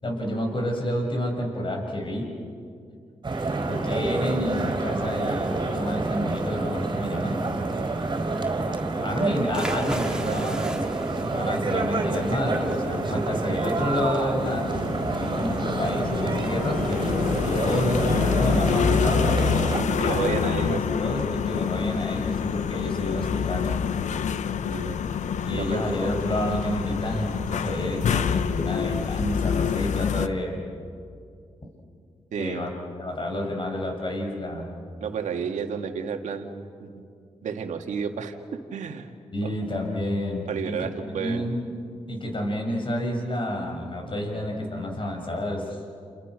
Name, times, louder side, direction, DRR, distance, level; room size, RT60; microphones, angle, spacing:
voice 1, 0.0-2.3 3.7-7.4 9.0-10.7 11.2-14.7 15.2-19.3 19.8-23.8 25.4-30.6 32.4-32.7 33.0-34.7 39.3-40.8 41.1-41.7 42.1-45.8, left 1 dB, 40° left, 1 dB, 6.9 m, -29 dB
sound 1, 3.2-19.8, right 3 dB, 40° right, 4.3 m, -28 dB
sound 2, 9.5-18.7, right 1 dB, 5° right, 3.3 m, -40 dB
voice 2, 10.3-10.7 19.9-20.8 21.1-21.4 24.7-25.0 25.6-26.2 32.3-32.6 35.0-37.0 37.4-39.1 39.4-39.5 40.5-41.5, right 6 dB, 80° right, 5 dB, 2.0 m, -32 dB
sound 3, 14.4-30.3, left 7 dB, 75° left, 0.9 m, -27 dB
29.5 x 29.0 x 6.4 m, 2.3 s
cardioid pair, 55°, 12 cm